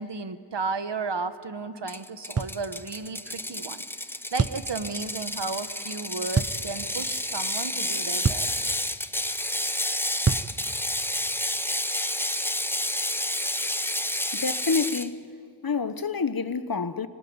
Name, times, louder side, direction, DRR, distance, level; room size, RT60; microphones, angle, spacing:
voice 1, 0.0-8.6, right 4 dB, 85° right, 1.2 m, -34 dB
Ratchet pawl, 1.9-15.1, left 1 dB, 5° left, 0.6 m, -30 dB
sound 1, 2.4-2.6 4.4-4.7 6.3-6.6 8.2-8.5 10.2-10.5, right 5 dB, 35° right, 0.6 m, -25 dB
voice 2, 14.3-15.3 15.6-17.1, left 5 dB, 55° left, 1.0 m, -28 dB
25.0 x 19.0 x 9.6 m
wide cardioid pair, 55°, 41 cm